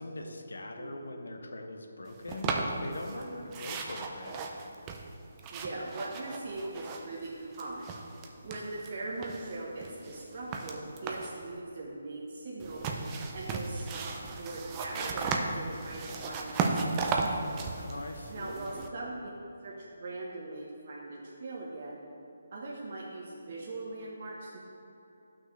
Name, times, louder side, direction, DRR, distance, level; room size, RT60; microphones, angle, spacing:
voice 1, 0.0-4.4 17.8-18.8, left 2 dB, 75° left, 4 dB, 0.9 m, -42 dB
sound 1, 2.3-3.2 3.5-7.3 7.5-8.9 9.2-11.4 12.6-18.9, right 4 dB, 20° right, 0.6 m, -35 dB
voice 2, 5.5-8.0 8.4-12.8 13.3-17.4 18.3-19.3 19.6-22.0 22.5-24.6, right 2 dB, 50° right, -4 dB, 1.1 m, -40 dB
11.0 x 6.0 x 3.3 m, 2.9 s
figure-of-eight pair, 150°, 0 cm